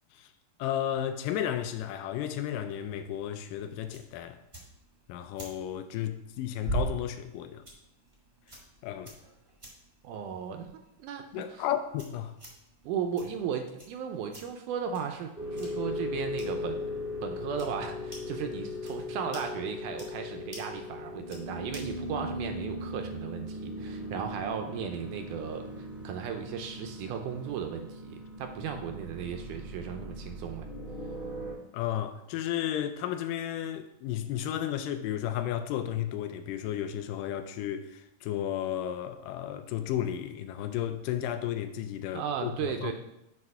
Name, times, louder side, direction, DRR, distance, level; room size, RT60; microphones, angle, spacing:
voice 1, 0.6-4.4 5.1-7.6 8.8-9.1 11.3-12.4 31.7-42.9, left 11 dB, 80° left, 2.1 m, -33 dB
sound 1, 2.9-22.0, right 2 dB, 50° right, 0.3 m, -45 dB
voice 2, 10.0-10.7 11.0-11.6 12.8-16.8 17.2-30.7 42.1-42.9, right 7 dB, 80° right, 1.9 m, -36 dB
sound 2, 15.4-31.5, left 1 dB, ahead, 0.8 m, -38 dB
6.4 x 4.8 x 5.4 m
omnidirectional pair, 3.9 m